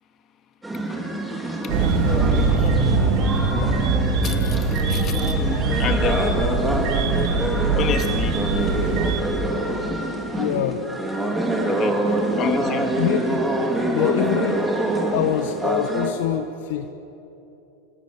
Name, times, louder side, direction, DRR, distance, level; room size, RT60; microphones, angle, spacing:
sound 1, 0.6-16.1, right 1 dB, 10° right, 4.2 m, -25 dB
sound 2, 1.7-9.2, right 4 dB, 60° right, 3.6 m, -22 dB
voice 1, 4.2-5.3 5.8-6.5 7.7-8.4 11.7-11.9 12.4-12.9, left 7 dB, 40° left, 6 dB, 2.8 m, -29 dB
voice 2, 10.3-10.8 12.1-12.2 12.9-13.4 13.9-14.6 15.1-16.9, left 11 dB, 70° left, 7 dB, 1.2 m, -25 dB
26.5 x 18.5 x 9.8 m, 3.0 s
hypercardioid pair, 105°, 0 cm